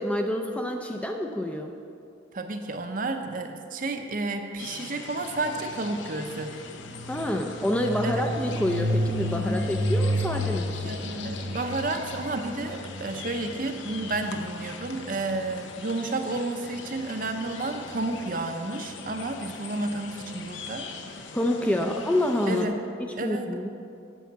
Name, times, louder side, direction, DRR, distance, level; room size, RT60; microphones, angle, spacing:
voice 1, 0.0-1.7 7.1-10.9 21.3-22.7 23.2-23.7, left 1 dB, 5° left, 3 dB, 0.4 m, -27 dB
voice 2, 2.3-6.5 8.0-8.1 10.8-20.9 22.5-22.8 23.2-23.5, right 2 dB, 45° right, 6 dB, 0.7 m, -31 dB
sound 1, 4.6-22.7, left 5 dB, 65° left, 0.7 m, -42 dB
sound 2, 5.4-15.3, equal, 75° right, 1.5 m, -31 dB
9.3 x 5.7 x 7.3 m, 2.5 s
head